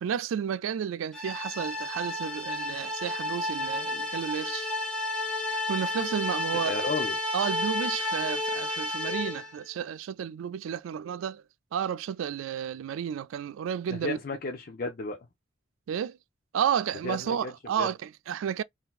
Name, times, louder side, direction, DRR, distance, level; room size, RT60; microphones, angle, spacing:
voice 1, 0.0-4.7 5.5-6.7 7.3-11.4 11.7-14.2 15.9-16.2 16.5-18.6, right 8 dB, 85° right, 0.3 m, -32 dB
sound 1, 1.1-9.6, left 1 dB, 5° left, 1.0 m, -31 dB
voice 2, 6.5-7.2 13.9-15.2 17.0-17.5 17.8-17.9, left 3 dB, 50° left, 0.5 m, -33 dB
3.8 x 2.7 x 2.4 m
head